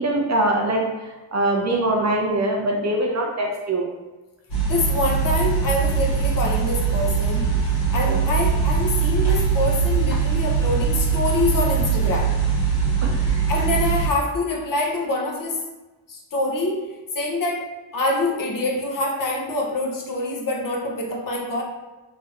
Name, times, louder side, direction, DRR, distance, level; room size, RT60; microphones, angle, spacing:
voice 1, 0.0-3.9 8.0-8.2 13.0-13.5, right 1 dB, 35° right, -1 dB, 0.4 m, -23 dB
sound 1, 4.5-14.1, right 6 dB, 70° left, 1.2 m, -21 dB
voice 2, 4.7-7.5 7.9-12.3 13.5-15.6 16.1-21.6, left 2 dB, 45° left, -1 dB, 0.6 m, -25 dB
3.2 x 2.9 x 2.4 m, 1.2 s
cardioid pair, 120°, 49 cm